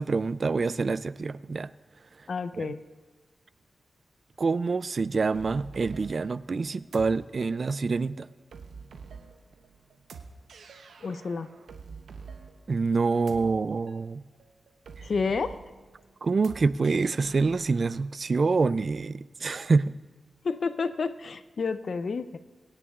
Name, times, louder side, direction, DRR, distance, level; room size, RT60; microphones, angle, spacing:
voice 1, 0.0-1.7 2.6-2.7 4.4-8.3 12.7-14.2 16.2-19.9, right 4 dB, 55° right, 17 dB, 0.3 m, -26 dB
voice 2, 2.3-2.8 11.0-11.5 15.0-15.6 20.4-22.4, left 4 dB, 65° left, 12 dB, 0.6 m, -30 dB
sound 1, 5.3-18.0, right 5 dB, 85° right, 0.8 m, -47 dB
24.0 x 9.9 x 2.4 m, 1.3 s
cardioid pair, 60°, 0 cm